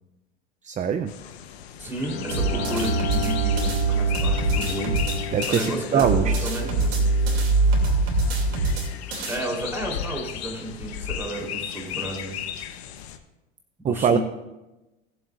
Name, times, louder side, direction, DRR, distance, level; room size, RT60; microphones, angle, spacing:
voice 1, 0.6-1.1 5.3-6.5 13.8-14.2, right 7 dB, 25° right, 11 dB, 0.5 m, -23 dB
sound 1, 1.1-13.2, left 9 dB, 80° left, 1.1 m, -36 dB
voice 2, 1.8-5.0 5.5-7.0 9.3-12.4 13.8-14.2, right 1 dB, 5° right, -2 dB, 3.6 m, -32 dB
Bowed string instrument, 1.9-9.0, left 1 dB, 40° left, 3.6 m, -34 dB
sound 2, 2.3-5.7 6.0-9.4, right 3 dB, 80° right, 2.9 m, -23 dB
18.5 x 7.2 x 2.5 m, 1.0 s
hypercardioid pair, 95°, 31 cm